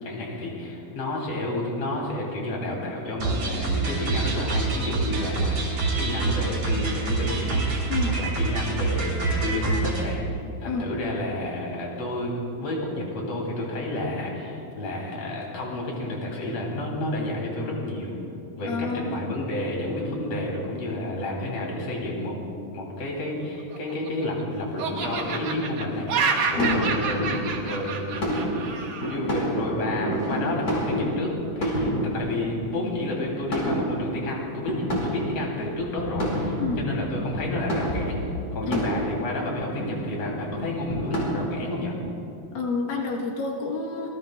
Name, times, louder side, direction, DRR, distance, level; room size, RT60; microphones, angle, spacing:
voice 1, 0.0-10.2 10.6-18.1 18.6-22.4 22.7-27.3 27.7-28.1 29.0-38.2 38.5-41.9, left 1 dB, 50° left, -2 dB, 3.7 m, -30 dB
sound 1, 3.2-10.0, right 3 dB, 50° right, 4.3 m, -26 dB
voice 2, 18.6-19.3 26.5-26.9 36.6-36.8 38.7-38.8 42.5-44.1, left 4 dB, 85° left, 0 dB, 3.0 m, -29 dB
Laughter, 23.6-24.4 24.8-29.2, right 5 dB, 75° right, 2.9 m, -29 dB
sound 2, 24.9-41.3, equal, 25° left, 4.6 m, -30 dB
26.5 x 20.5 x 2.3 m, 2.7 s
omnidirectional pair, 3.9 m